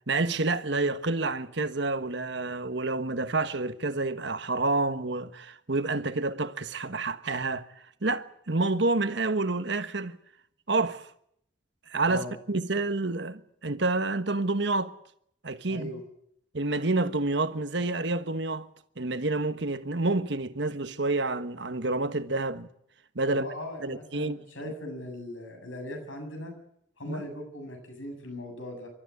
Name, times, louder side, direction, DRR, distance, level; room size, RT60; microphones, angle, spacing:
voice 1, 0.1-10.2 10.7-11.1 11.9-14.9 15.4-15.9 16.5-18.7 19.0-22.7 23.1-23.5 23.8-24.4 24.6-24.7 27.1-27.2, right 2 dB, 65° right, 1.3 m, -28 dB
voice 2, 15.7-16.0 23.3-26.5 27.0-28.9, left 1 dB, 85° left, 7.8 m, -39 dB
29.5 x 13.0 x 9.7 m
head